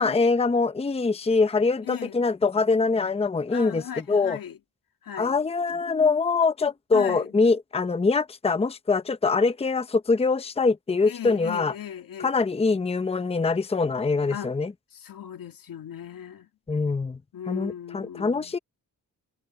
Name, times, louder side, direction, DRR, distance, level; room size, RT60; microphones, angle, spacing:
voice 1, 0.0-4.4 5.2-11.7 12.2-14.7 16.7-17.2 17.5-18.6, left 4 dB, 20° left, 0.7 m, -24 dB
voice 2, 1.8-2.2 3.5-4.6 5.0-5.4 6.9-7.3 11.0-12.3 14.3-14.5 14.9-16.5 17.3-18.5, left 9 dB, 85° left, 2.1 m, -37 dB
wide cardioid pair, 110°, 33 cm